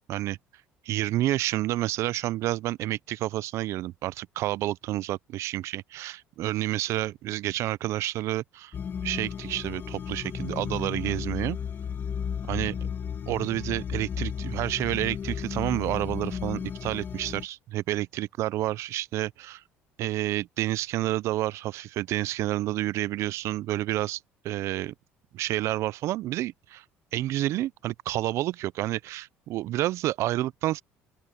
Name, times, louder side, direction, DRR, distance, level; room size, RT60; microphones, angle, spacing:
voice 1, 0.8-8.7 9.0-11.6 12.5-12.8 13.3-19.6 20.0-24.9 25.3-26.8 27.1-30.8, right 15 dB, 65° right, 0.4 m, -29 dB
sound 1, 8.7-17.4, left 7 dB, 40° left, 1.8 m, -34 dB
open air
supercardioid pair, 95°, 5 cm